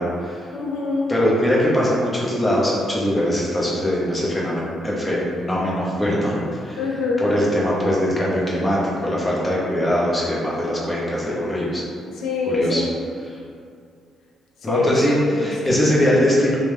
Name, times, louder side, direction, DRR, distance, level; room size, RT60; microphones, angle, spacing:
voice 1, 0.0-0.5 1.1-6.8 7.2-11.8 12.5-12.8 14.6-16.6, equal, 20° left, -6 dB, 0.8 m, -21 dB
voice 2, 0.5-1.1 6.8-7.3 12.1-13.0 14.6-16.2, left 3 dB, 75° left, -3 dB, 0.6 m, -25 dB
3.0 x 2.1 x 3.4 m, 2.3 s
cardioid pair, 90°, 0 cm